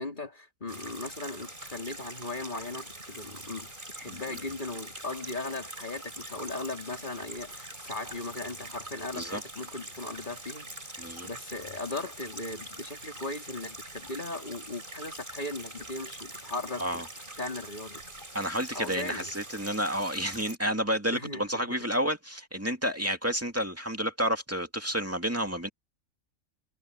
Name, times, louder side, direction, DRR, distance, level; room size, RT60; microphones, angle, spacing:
voice 1, 0.0-17.0 17.4-18.0 18.7-19.3 21.1-21.4, left 2 dB, 35° left, 3.6 m, -38 dB
sound 1, 0.7-20.6, right 1 dB, 40° right, 6.2 m, -44 dB
voice 2, 11.0-11.3 16.8-17.0 18.3-25.7, equal, 10° right, 2.3 m, -30 dB
omnidirectional pair, 1.4 m